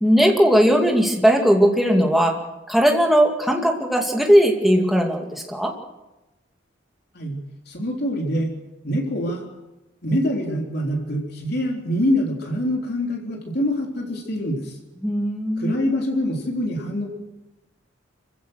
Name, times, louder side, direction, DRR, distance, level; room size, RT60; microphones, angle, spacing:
voice 1, 0.0-2.3 2.7-5.7 15.0-15.8, equal, ahead, 1 dB, 2.4 m, -18 dB
voice 2, 7.7-8.5 8.8-9.4 10.0-14.8 15.6-17.1, equal, 55° left, 1 dB, 3.7 m, -25 dB
26.0 x 15.5 x 6.5 m, 1.0 s
head